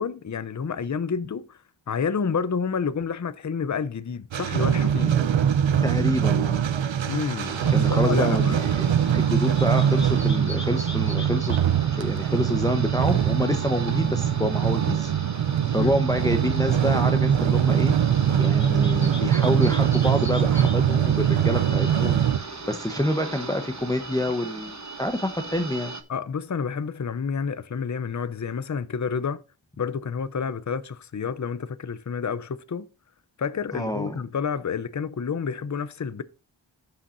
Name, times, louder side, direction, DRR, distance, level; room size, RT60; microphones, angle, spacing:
voice 1, 0.0-1.6 1.9-5.2 7.0-7.6 7.9-8.6 15.8-16.0 26.1-29.4 29.8-32.8 33.4-36.2, left 6 dB, 40° left, 0.6 m, -29 dB
sound 1, 4.3-22.4, right 9 dB, 85° right, 0.7 m, -22 dB
voice 2, 5.8-6.7 7.7-8.9 9.1-11.5 11.9-15.1 15.7-17.9 18.4-22.2 22.7-25.9 33.7-34.2, left 1 dB, 10° left, 0.9 m, -27 dB
sound 2, 7.4-26.0, right 3 dB, 40° right, 1.1 m, -38 dB
sound 3, 9.0-24.3, left 2 dB, 25° left, 1.6 m, -44 dB
15.5 x 5.7 x 2.6 m
wide cardioid pair, 60°, 44 cm